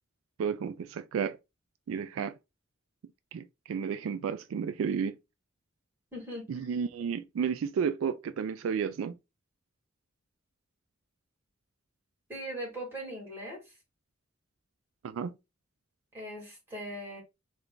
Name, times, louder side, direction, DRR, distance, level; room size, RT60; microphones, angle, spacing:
voice 1, 0.4-1.4 1.9-2.4 3.3-5.2 6.5-9.1 15.0-15.3, right 6 dB, 85° right, 0.3 m, -32 dB
voice 2, 6.1-6.5 12.3-13.7 16.1-17.2, equal, 10° right, 1.9 m, -40 dB
3.3 x 2.4 x 3.7 m
head